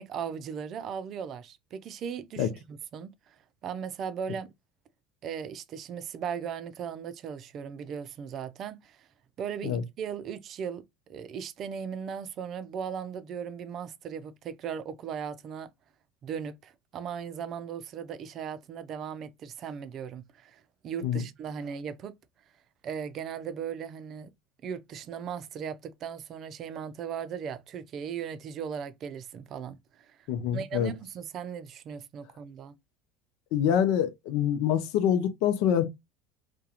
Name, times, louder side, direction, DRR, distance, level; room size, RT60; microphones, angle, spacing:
voice 1, 0.0-3.4 3.6-4.5 5.2-9.1 9.4-10.8 11.1-15.7 16.2-22.1 22.8-24.3 24.6-30.2 30.5-32.7, right 7 dB, 50° right, 0.4 m, -37 dB
voice 2, 30.3-30.9 33.5-35.9, left 9 dB, 70° left, 0.5 m, -25 dB
2.3 x 2.1 x 2.8 m
supercardioid pair, 95°, 0 cm